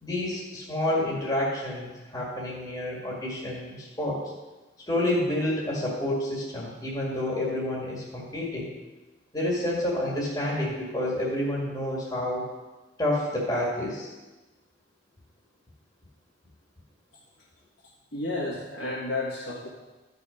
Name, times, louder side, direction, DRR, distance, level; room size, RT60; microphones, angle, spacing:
voice 1, 0.0-4.2 4.9-8.7 9.3-12.5 13.0-14.1, left 1 dB, 20° left, -4 dB, 1.9 m, -29 dB
voice 2, 18.1-19.7, left 2 dB, 70° left, -7 dB, 2.1 m, -31 dB
13.0 x 5.5 x 5.1 m, 1.2 s
head